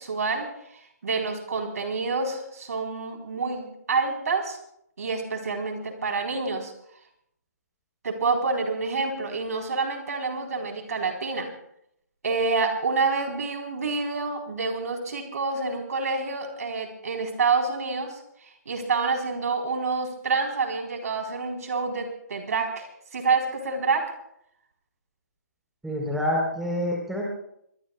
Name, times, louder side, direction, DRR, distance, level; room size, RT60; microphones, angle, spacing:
voice 1, 0.0-4.6 5.0-6.7 8.0-11.5 12.2-24.1, right 4 dB, 60° right, 2 dB, 4.0 m, -28 dB
voice 2, 25.8-27.3, left 1 dB, ahead, -2 dB, 3.9 m, -27 dB
24.5 x 21.5 x 2.4 m, 0.74 s
hypercardioid pair, 155°, 9 cm